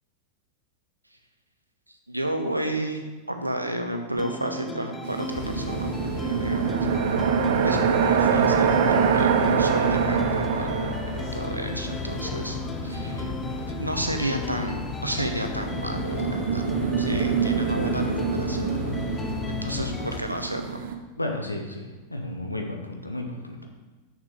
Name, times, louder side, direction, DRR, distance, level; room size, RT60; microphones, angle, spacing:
voice 1, 2.1-5.9 6.2-6.9 7.6-16.7 17.0-18.7 19.2-20.8, right 1 dB, 85° right, 5 dB, 0.8 m, -32 dB
sound 1, 4.2-20.2, left 2 dB, 10° left, 0.4 m, -38 dB
sound 2, 5.0-14.5 15.2-21.0, right 6 dB, 55° right, 0.7 m, -26 dB
sound 3, 5.3-20.2, left 5 dB, 40° left, 0.8 m, -35 dB
voice 2, 21.2-23.7, left 1 dB, 85° left, 3 dB, 1.1 m, -33 dB
6.6 x 6.5 x 5.0 m, 1.3 s
figure-of-eight pair, 90°, 0 cm